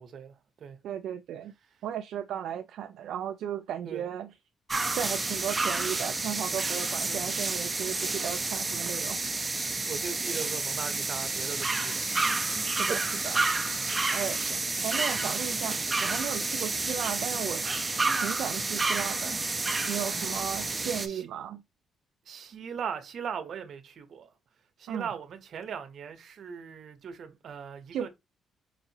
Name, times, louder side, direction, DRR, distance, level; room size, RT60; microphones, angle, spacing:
voice 1, 0.0-0.8 3.8-4.1 7.0-7.3 9.9-12.1 12.9-13.0 15.2-15.4 16.4-16.5 21.1-21.3 22.3-24.3 24.8-28.1, right 7 dB, 60° right, 0.8 m, -39 dB
voice 2, 0.8-1.5 1.8-4.4 4.9-9.2 12.7-13.0 13.2-13.4 14.1-14.6 14.8-17.7 18.2-19.4 19.9-21.6 24.9-25.1 27.9-28.1, right 9 dB, 75° right, 0.3 m, -35 dB
sound 1, 4.7-21.1, right 3 dB, 25° right, 0.6 m, -30 dB
4.9 x 2.7 x 2.7 m
cardioid pair, 90°, 0 cm